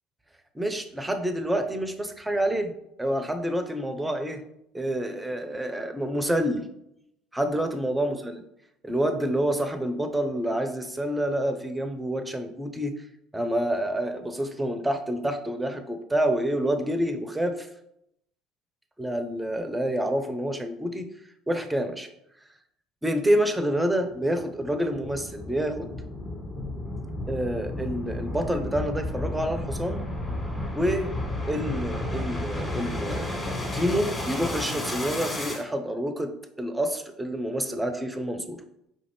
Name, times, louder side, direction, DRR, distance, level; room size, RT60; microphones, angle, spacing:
voice 1, 0.5-2.7 3.0-4.4 4.7-6.7 7.3-8.4 8.8-12.9 13.3-17.7 19.0-21.1 21.5-22.1 23.0-25.9 27.3-30.0 30.7-31.1 31.5-36.3 36.6-38.6, right 1 dB, 10° right, 7 dB, 0.6 m, -28 dB
sound 1, 24.1-35.6, left 1 dB, 15° left, 1.5 m, -32 dB
4.8 x 2.5 x 3.4 m, 0.78 s
figure-of-eight pair, 60°, 0 cm